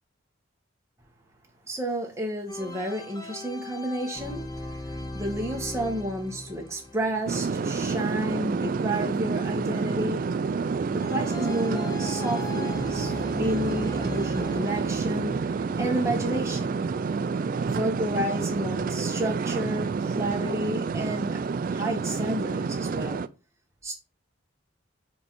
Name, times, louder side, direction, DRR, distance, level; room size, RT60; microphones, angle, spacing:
voice 1, 1.7-4.4 4.8-10.3 10.9-15.5 15.8-16.8 17.7-21.4 21.7-23.2 23.8-23.9, right 1 dB, 15° right, 1.4 m, -31 dB
sound 1, 2.5-8.6 11.0-16.4, left 2 dB, 20° left, 0.7 m, -39 dB
sound 2, 7.3-23.3, right 5 dB, 45° right, 0.3 m, -29 dB
5.3 x 4.6 x 4.0 m
head